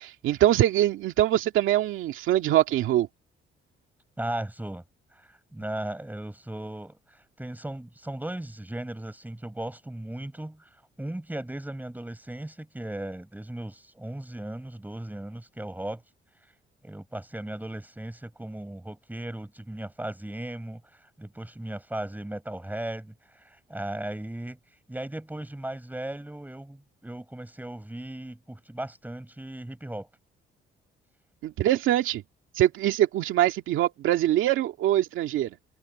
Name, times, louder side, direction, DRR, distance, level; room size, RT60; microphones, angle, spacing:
voice 1, 0.0-3.1 31.4-32.2 32.6-35.6, right 13 dB, 85° right, 2.1 m, -23 dB
voice 2, 4.2-4.8 5.1-10.7 11.0-16.0 16.8-24.6 24.9-30.1, right 1 dB, 10° right, 7.3 m, -37 dB
cardioid pair, 90°, 20 cm